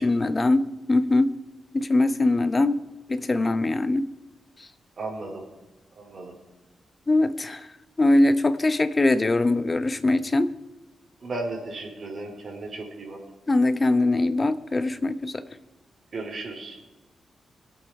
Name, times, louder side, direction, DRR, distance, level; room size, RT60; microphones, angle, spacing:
voice 1, 0.0-1.3 1.7-2.8 3.1-4.1 7.1-7.7 8.0-10.5 13.5-15.4, left 2 dB, 25° left, 13 dB, 0.9 m, -22 dB
voice 2, 5.0-5.4 6.0-6.3 11.2-13.2 16.1-16.8, right 2 dB, 45° right, 1 dB, 4.2 m, -35 dB
25.0 x 8.6 x 4.9 m, 1.1 s
cardioid pair, 105°, 0 cm